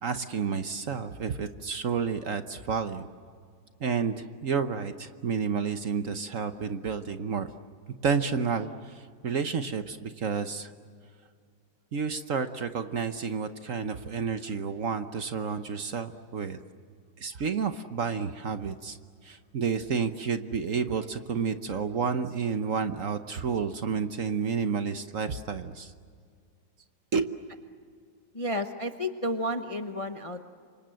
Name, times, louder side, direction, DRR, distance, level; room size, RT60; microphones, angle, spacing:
voice 1, 0.0-3.1 3.8-7.5 8.0-10.7 11.9-16.6 17.2-19.0 19.2-25.9 27.1-27.3, right 6 dB, 50° right, 9 dB, 1.2 m, -30 dB
voice 2, 28.3-30.5, left 1 dB, 25° left, 6 dB, 0.7 m, -31 dB
29.0 x 25.5 x 7.7 m, 2.1 s
omnidirectional pair, 2.0 m